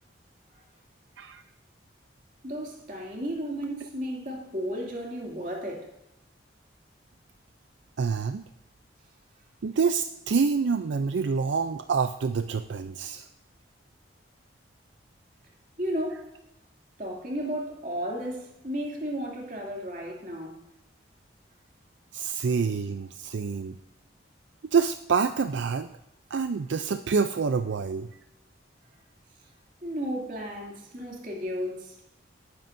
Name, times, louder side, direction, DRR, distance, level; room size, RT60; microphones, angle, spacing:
voice 1, 2.4-5.9 15.8-16.3 17.0-20.6 29.8-32.0, equal, 45° right, 2.5 m, -33 dB
voice 2, 8.0-8.4 9.6-13.3 22.1-23.8 24.7-25.9 26.3-28.1, right 5 dB, 75° right, 0.4 m, -27 dB
18.5 x 9.5 x 2.6 m
head